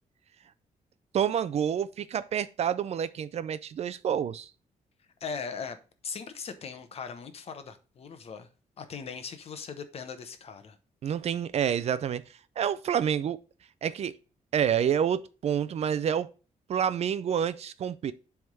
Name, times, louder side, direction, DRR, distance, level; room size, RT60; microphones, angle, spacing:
voice 1, 1.1-4.5 11.0-12.2 12.6-13.4 13.8-14.1 14.5-16.3 16.7-18.1, right 8 dB, 50° right, 0.4 m, -28 dB
voice 2, 5.2-5.8 6.0-8.5 8.8-10.8, left 5 dB, 45° left, 1.0 m, -39 dB
7.8 x 3.6 x 5.4 m
wide cardioid pair, 165°, 14 cm